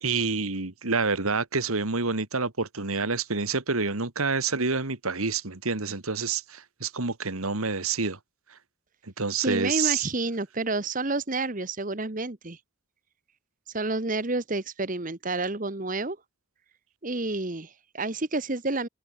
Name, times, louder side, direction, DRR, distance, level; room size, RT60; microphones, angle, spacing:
voice 1, 0.0-8.2 9.2-10.1, right 4 dB, 90° right, 2.2 m, -28 dB
voice 2, 9.4-12.6 13.7-16.2 17.0-18.9, right 2 dB, 40° right, 1.2 m, -29 dB
open air
head